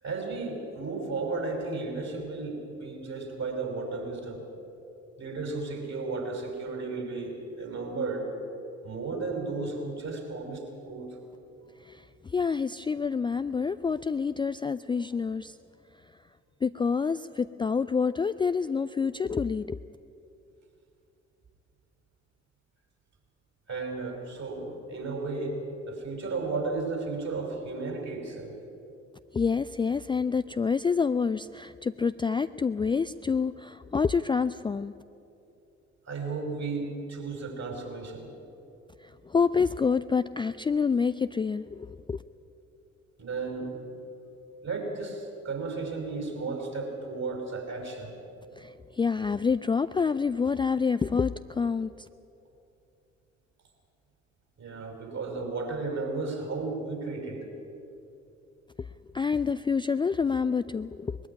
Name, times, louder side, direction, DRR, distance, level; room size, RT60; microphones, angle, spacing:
voice 1, 0.0-4.4 5.2-8.3 8.8-11.2 23.7-28.5 36.1-38.3 43.2-43.8 44.6-48.1 54.6-57.5, right 3 dB, 45° right, 3 dB, 5.4 m, -34 dB
voice 2, 11.8-15.5 16.6-19.8 29.3-34.9 39.0-42.2 48.6-51.9 58.8-58.9 59.1-61.2, left 5 dB, 15° left, 13 dB, 0.4 m, -27 dB
20.5 x 14.5 x 9.7 m, 2.8 s
figure-of-eight pair, 45°, 36 cm